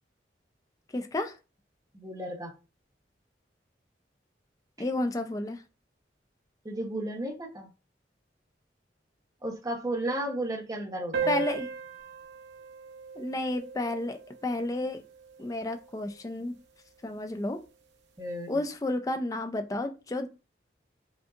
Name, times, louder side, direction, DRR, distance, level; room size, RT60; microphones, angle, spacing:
voice 1, 0.9-1.4 4.8-5.6 11.3-11.7 13.2-15.0 15.4-16.5 17.0-17.6 18.5-20.3, left 2 dB, 20° left, 7 dB, 0.3 m, -31 dB
voice 2, 1.9-2.5 6.6-7.7 9.4-11.4 18.2-18.6, right 1 dB, 20° right, 0 dB, 0.9 m, -34 dB
sound 1, 11.1-16.1, right 5 dB, 85° right, 0.7 m, -37 dB
5.1 x 2.7 x 2.4 m, 0.30 s
head